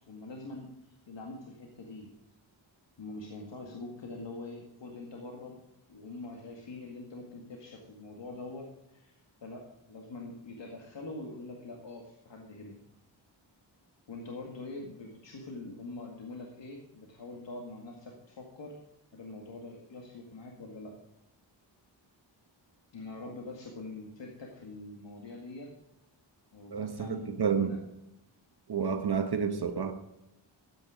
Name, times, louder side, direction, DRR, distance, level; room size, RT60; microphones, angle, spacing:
voice 1, 0.1-2.1 3.0-5.6 5.9-12.8 14.1-18.8 19.1-20.9 22.9-25.7 26.5-27.8, left 2 dB, 70° left, 0 dB, 2.0 m, -44 dB
voice 2, 26.7-27.8 28.7-29.9, right 6 dB, 55° right, 6 dB, 1.1 m, -30 dB
13.5 x 9.1 x 5.0 m, 0.89 s
wide cardioid pair, 125°, 46 cm